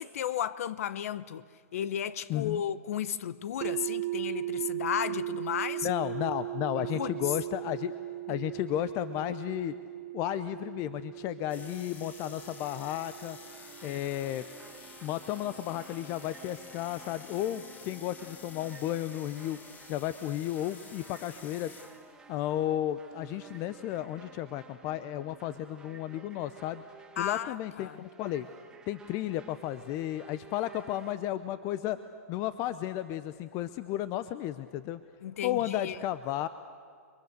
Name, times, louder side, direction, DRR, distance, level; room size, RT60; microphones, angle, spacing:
voice 1, 0.0-1.4 1.7-5.9 6.8-7.2 13.8-14.0 27.2-28.0 35.2-36.0, left 10 dB, 65° left, 1.0 m, -34 dB
voice 2, 2.3-2.6 5.8-7.9 8.3-9.8 10.1-13.4 13.8-14.4 15.0-19.6 19.9-21.7 22.3-26.8 27.2-28.5 28.9-32.0 32.3-35.0 35.4-36.5, left 13 dB, 40° left, 0.8 m, -33 dB
sound 1, 3.6-15.5, right 17 dB, 45° right, 0.6 m, -38 dB
sound 2, 11.5-22.0, left 4 dB, 20° left, 2.1 m, -51 dB
sound 3, 12.8-31.2, right 4 dB, 10° right, 1.7 m, -54 dB
29.5 x 23.0 x 6.8 m
hypercardioid pair, 120°, 8 cm